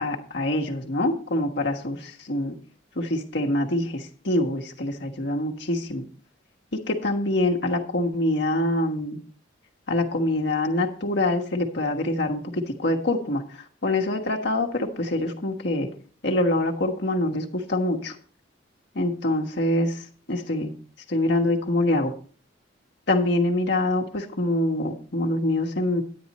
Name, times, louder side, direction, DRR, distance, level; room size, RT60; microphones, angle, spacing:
voice 1, 0.0-2.5 2.9-6.1 6.7-9.2 9.9-15.9 16.2-18.2 18.9-20.7 21.1-22.1 23.1-26.0, left 1 dB, 65° left, 2 dB, 1.4 m, -25 dB
9.7 x 9.4 x 4.2 m, 0.42 s
head